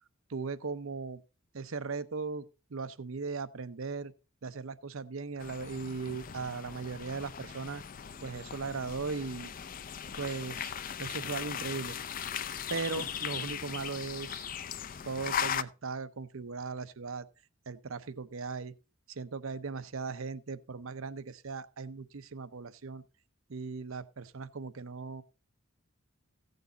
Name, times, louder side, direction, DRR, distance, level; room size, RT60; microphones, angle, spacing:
voice 1, 0.3-1.2 1.5-4.1 4.4-7.8 8.2-9.5 10.2-10.7 11.0-12.0 12.7-14.4 15.0-17.3 17.7-18.7 19.1-23.0 23.5-25.2, right 4 dB, 75° right, 0.7 m, -38 dB
sound 1, 5.4-15.6, left 8 dB, 40° left, 0.4 m, -38 dB
16.0 x 6.7 x 3.9 m
head